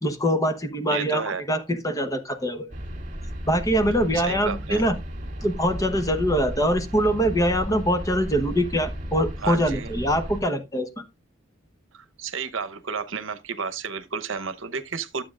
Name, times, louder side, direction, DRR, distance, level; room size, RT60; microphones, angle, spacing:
voice 1, 0.0-2.7 3.5-5.0 5.4-11.0, equal, 15° left, 1.0 m, -24 dB
voice 2, 0.9-1.4 4.1-4.8 9.4-9.9 11.9-15.2, right 5 dB, 75° right, 0.9 m, -32 dB
sound 1, 2.7-10.4, equal, 40° right, 2.1 m, -34 dB
12.0 x 7.7 x 2.4 m
head